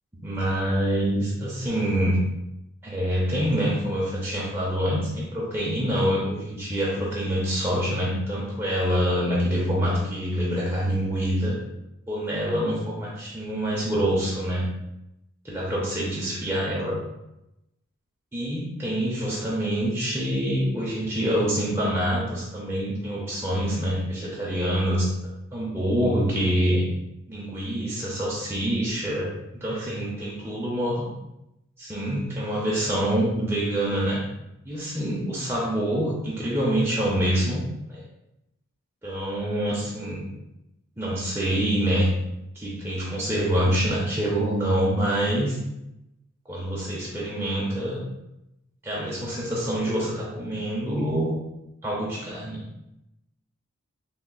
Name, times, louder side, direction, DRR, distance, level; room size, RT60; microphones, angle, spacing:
voice 1, 0.2-2.2 2.8-11.5 12.1-14.7 15.4-17.0 18.3-25.1 25.5-26.8 27.3-29.3 29.6-31.1 31.8-34.2 34.6-38.0 39.0-40.3 41.0-42.1 42.5-45.6 46.5-48.0 48.8-51.4 51.8-52.6, equal, 10° right, -6 dB, 0.5 m, -26 dB
3.8 x 2.8 x 2.2 m, 0.89 s
head